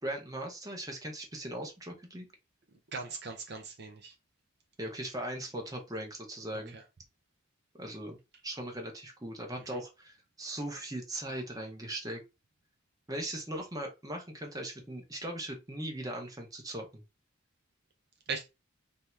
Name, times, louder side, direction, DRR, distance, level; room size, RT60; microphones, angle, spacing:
voice 1, 0.0-2.3 4.8-6.7 7.8-8.2 8.4-12.2 13.1-17.0, right 1 dB, 20° right, 1.0 m, -39 dB
voice 2, 2.9-4.1 6.7-6.8 9.7-9.8 18.3-18.5, right 4 dB, 55° right, 0.6 m, -39 dB
3.4 x 2.8 x 4.4 m
head